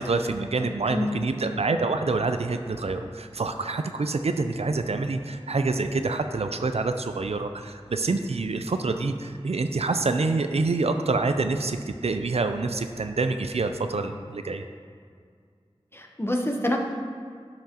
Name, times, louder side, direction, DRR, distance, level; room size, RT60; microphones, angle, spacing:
voice 1, 0.0-14.7, right 3 dB, 75° right, 8 dB, 0.4 m, -27 dB
voice 2, 0.9-1.2 15.9-16.8, left 1 dB, 20° left, 1 dB, 0.8 m, -27 dB
10.0 x 5.8 x 2.9 m, 2.1 s
wide cardioid pair, 50°, 11 cm